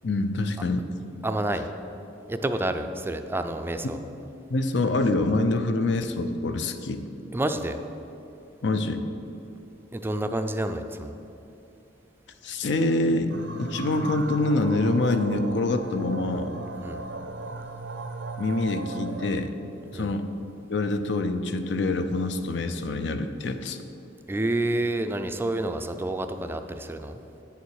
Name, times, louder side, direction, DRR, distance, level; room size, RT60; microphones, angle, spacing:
voice 1, 0.0-0.9 4.5-7.0 8.6-9.0 12.4-16.5 18.4-19.5 19.9-20.2 20.7-23.8, left 2 dB, 70° left, 8 dB, 0.6 m, -25 dB
voice 2, 1.2-1.7 2.3-4.0 7.3-7.8 9.9-11.1 16.8-17.0 19.9-20.1 24.3-27.2, right 1 dB, 10° right, 7 dB, 0.4 m, -29 dB
sound 1, 13.3-19.5, right 3 dB, 70° right, 0.6 m, -37 dB
8.9 x 6.8 x 4.7 m, 2.8 s
head